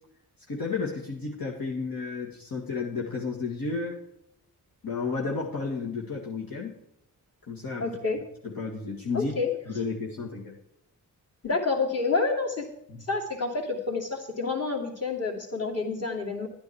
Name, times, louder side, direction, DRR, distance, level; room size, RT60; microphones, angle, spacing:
voice 1, 0.5-4.0 4.8-6.8 7.5-7.9 8.4-9.3 9.7-10.6 12.9-13.1, left 4 dB, 65° left, -3 dB, 1.9 m, -32 dB
voice 2, 7.8-8.2 9.1-9.5 11.4-12.7 13.0-16.5, left 4 dB, 40° left, -1 dB, 2.6 m, -28 dB
11.5 x 9.3 x 4.7 m, 0.79 s
cardioid pair, 60°, 38 cm